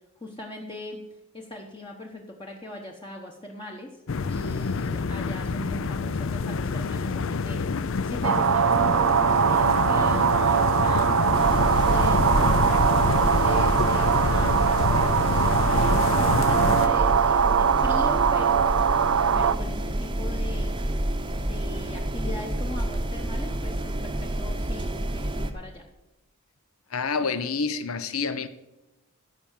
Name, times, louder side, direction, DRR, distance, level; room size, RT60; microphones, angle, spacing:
voice 1, 0.2-1.0 1.3-12.6 13.2-18.9 19.3-20.8 21.3-25.9, left 1 dB, 20° left, 1.0 m, -40 dB
sound 1, 4.1-16.9, left 4 dB, 65° left, 0.5 m, -27 dB
sound 2, 8.2-19.5, right 7 dB, 75° right, 0.5 m, -22 dB
Kitchen ambience, 11.3-25.5, right 1 dB, 20° right, 0.8 m, -29 dB
voice 2, 26.9-28.5, left 5 dB, 80° left, 0.9 m, -28 dB
14.0 x 5.5 x 7.3 m
head